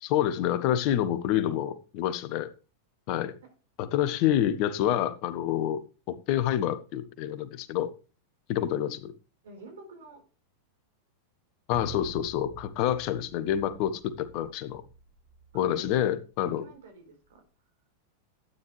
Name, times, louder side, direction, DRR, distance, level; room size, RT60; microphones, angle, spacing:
voice 1, 0.0-2.5 3.1-3.3 3.8-5.8 6.1-7.9 8.5-9.1 11.7-14.8 15.5-16.6, left 11 dB, 45° left, 13 dB, 1.3 m, -27 dB
voice 2, 9.4-10.2 15.5-16.0 16.4-17.4, right 3 dB, 60° right, 5 dB, 4.5 m, -49 dB
sound 1, 11.7-16.2 16.5-16.6, right 4 dB, 15° right, 6.2 m, -47 dB
12.5 x 9.6 x 3.3 m, 0.33 s
figure-of-eight pair, 90°, 0 cm